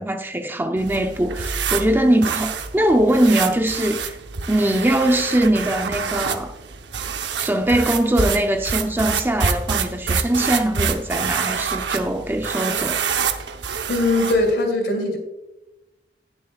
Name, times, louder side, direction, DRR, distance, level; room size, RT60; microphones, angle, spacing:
voice 1, 0.0-4.2 4.5-6.5 7.4-13.0, right 1 dB, 15° right, 0.5 m, -21 dB
sound 1, 0.8-14.5, right 6 dB, 80° right, 0.8 m, -27 dB
voice 2, 13.9-15.2, left 2 dB, 65° left, 2.7 m, -20 dB
18.5 x 6.9 x 2.3 m
head